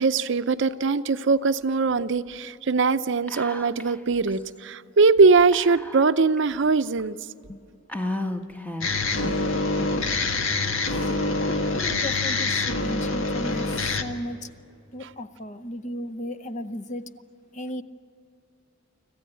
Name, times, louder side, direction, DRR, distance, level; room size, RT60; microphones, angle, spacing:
voice 1, 0.0-7.2, right 4 dB, 65° right, 13 dB, 0.6 m, -21 dB
Whispering, 3.3-4.0 4.3-4.4 5.5-6.4 7.0-7.1 7.9-9.1, left 1 dB, 10° left, 1.0 m, -33 dB
sound 1, 8.8-14.0, left 3 dB, 75° left, 1.6 m, -25 dB
voice 2, 9.8-10.2 10.9-11.1 11.8-13.7 14.0-14.5 14.9-17.0 17.5-17.8, left 1 dB, 35° left, 13 dB, 0.8 m, -35 dB
26.0 x 15.0 x 8.9 m, 2.6 s
head